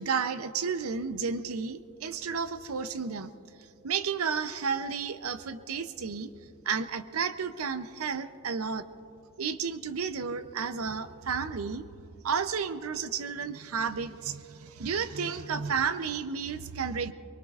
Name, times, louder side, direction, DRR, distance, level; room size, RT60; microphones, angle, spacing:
voice 1, 0.0-3.3 3.6-6.3 6.6-8.9 9.4-11.8 12.2-17.1, right 6 dB, 80° right, 12 dB, 0.6 m, -32 dB
24.0 x 23.5 x 2.4 m, 2.7 s
head